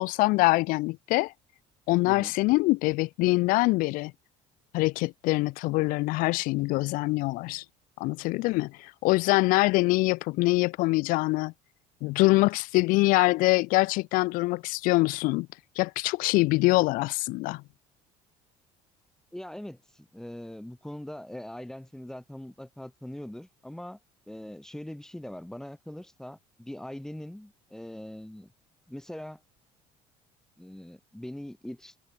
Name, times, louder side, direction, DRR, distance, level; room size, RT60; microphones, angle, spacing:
voice 1, 0.0-1.3 1.9-4.1 4.7-7.6 8.0-11.5 12.0-15.5 15.8-17.6, left 22 dB, 75° left, 0.5 m, -24 dB
voice 2, 19.3-24.0 24.3-28.5 28.9-29.4 30.6-32.0, left 1 dB, 5° left, 5.7 m, -41 dB
cardioid pair, 130°, 15 cm